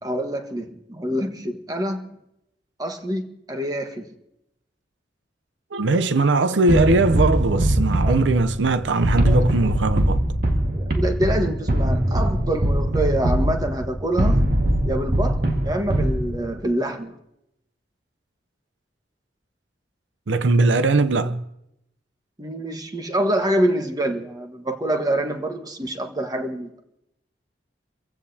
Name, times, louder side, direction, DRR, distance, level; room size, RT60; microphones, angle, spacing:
voice 1, 0.0-2.0 2.8-3.2 3.5-4.1 8.0-8.1 9.3-9.4 10.7-14.5 14.8-17.1 22.4-26.8, right 1 dB, 20° right, 1.3 m, -26 dB
voice 2, 5.7-10.2 20.3-21.4, right 3 dB, 85° right, 0.6 m, -20 dB
sound 1, 6.7-16.6, right 1 dB, 55° right, 1.8 m, -22 dB
29.5 x 15.5 x 2.8 m
head